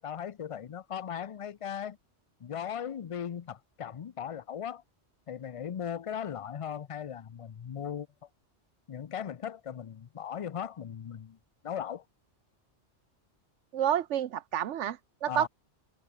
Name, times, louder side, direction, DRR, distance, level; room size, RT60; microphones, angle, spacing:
voice 1, 0.0-2.0 2.4-4.8 5.3-8.1 8.9-11.4 11.6-12.0 15.3-15.5, left 8 dB, 50° left, 0.4 m, -38 dB
voice 2, 13.7-15.5, right 10 dB, 85° right, 1.1 m, -29 dB
omnidirectional pair, 1.2 m